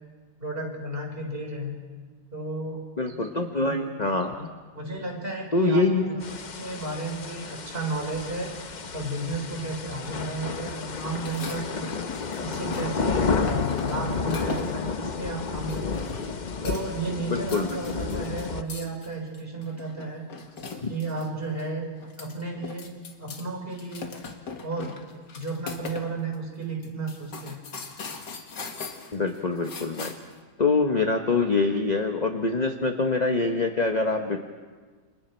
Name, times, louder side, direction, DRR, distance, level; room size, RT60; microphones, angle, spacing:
voice 1, 0.4-1.8 2.3-2.8 3.6-3.8 4.7-6.0 6.4-11.9 12.4-16.0 16.6-20.2 20.9-21.9 22.2-24.1 24.6-25.0 25.3-27.6, right 2 dB, 30° right, 1 dB, 4.4 m, -33 dB
voice 2, 3.0-4.5 5.5-6.2 17.3-17.8 20.8-20.9 29.1-30.1 30.6-34.4, left 3 dB, 30° left, 4 dB, 1.1 m, -25 dB
sound 1, 6.2-18.6, left 5 dB, 50° left, 0.5 m, -31 dB
sound 2, 11.1-13.1 13.5-14.9 15.7-16.4 16.6-17.1 17.4-21.3 21.6-21.7 22.0-23.4 23.7-26.1 26.3-26.4 26.8-30.4, left 5 dB, 70° left, 2.3 m, -39 dB
29.0 x 27.5 x 4.5 m, 1.4 s
omnidirectional pair, 1.9 m